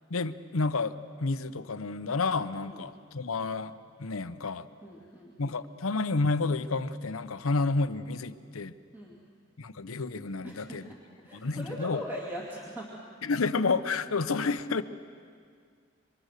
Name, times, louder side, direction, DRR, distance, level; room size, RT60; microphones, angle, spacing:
voice 1, 0.1-3.7 4.0-4.7 5.4-8.7 9.6-10.9 11.3-12.0 13.2-14.8, left 3 dB, 75° left, 12 dB, 0.8 m, -30 dB
voice 2, 4.8-5.6 8.9-9.2 10.4-12.9, equal, 10° right, -5 dB, 2.5 m, -41 dB
27.0 x 24.5 x 6.6 m, 2.1 s
head